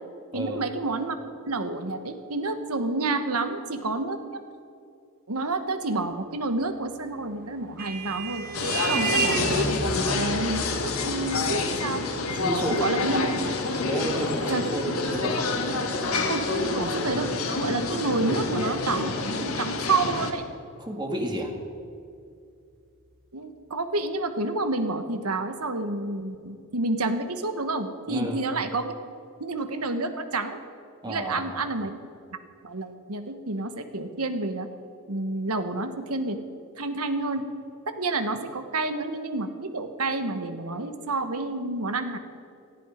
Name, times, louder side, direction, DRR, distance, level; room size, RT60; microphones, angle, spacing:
voice 1, 0.3-1.2 1.5-4.4 5.3-8.4 8.9-12.1 12.6-13.3 14.5-14.6 16.3-17.3 17.6-20.4 23.3-28.9 29.4-30.6 31.1-31.9 32.6-34.7 35.1-36.4 36.7-37.4 38.0-42.2, right 2 dB, 80° right, 8 dB, 1.4 m, -29 dB
Vehicle horn car horn honking, 7.2-16.1, right 3 dB, 40° right, 1.8 m, -33 dB
sound 1, 8.5-20.3, left 3 dB, 65° left, 1.7 m, -28 dB
voice 2, 12.3-12.8 13.8-15.4 20.8-21.5 28.1-28.4 31.0-31.6, right 1 dB, 20° right, 2 dB, 1.9 m, -31 dB
18.0 x 14.0 x 5.1 m, 2.4 s
head